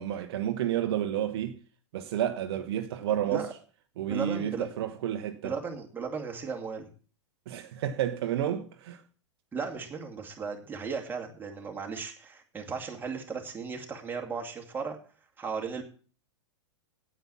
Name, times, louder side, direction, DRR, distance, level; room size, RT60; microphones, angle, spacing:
voice 1, 0.0-1.6 1.9-3.5 4.0-5.5 7.5-9.0, right 10 dB, 55° right, 1.1 m, -30 dB
voice 2, 4.1-4.7 5.4-6.9 9.5-15.0 15.4-15.8, right 5 dB, 15° right, 2.5 m, -36 dB
9.1 x 8.9 x 7.1 m
figure-of-eight pair, 100°, 15 cm